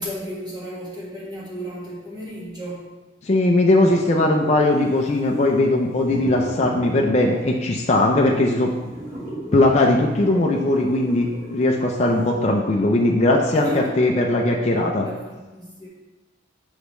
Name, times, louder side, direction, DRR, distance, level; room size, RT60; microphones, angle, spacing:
voice 1, 0.0-2.9 13.5-14.0 15.0-15.9, equal, 20° right, -7 dB, 1.6 m, -34 dB
voice 2, 3.2-8.7 9.5-15.1, left 2 dB, 35° left, 0 dB, 0.4 m, -19 dB
sound 1, 3.9-12.3, right 1 dB, 40° right, 1.5 m, -38 dB
6.3 x 5.0 x 3.1 m, 1.1 s
head